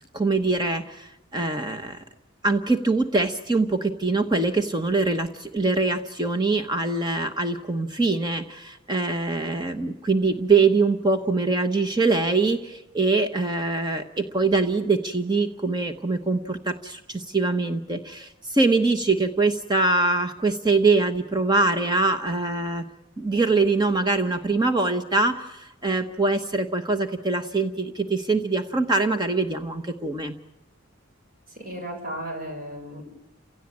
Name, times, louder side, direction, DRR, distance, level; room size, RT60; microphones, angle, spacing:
voice 1, 0.1-2.0 2.4-22.9 23.2-30.3, right 3 dB, 20° right, 7 dB, 1.1 m, -23 dB
voice 2, 31.5-33.1, equal, 45° right, 2 dB, 7.1 m, -34 dB
29.5 x 17.0 x 8.8 m, 0.92 s
head